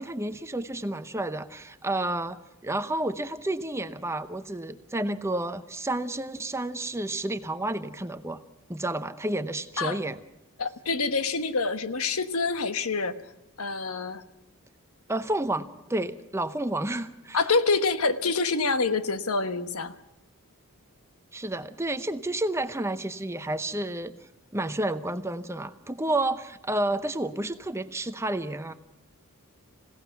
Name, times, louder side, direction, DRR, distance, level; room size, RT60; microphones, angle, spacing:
voice 1, 0.0-8.4 8.7-10.2 15.1-17.4 21.3-24.1 24.5-28.7, right 1 dB, 10° right, 11 dB, 0.8 m, -30 dB
voice 2, 10.6-13.2 13.6-14.2 17.3-19.9, left 4 dB, 75° left, 11 dB, 1.3 m, -26 dB
26.5 x 17.0 x 5.9 m, 0.90 s
head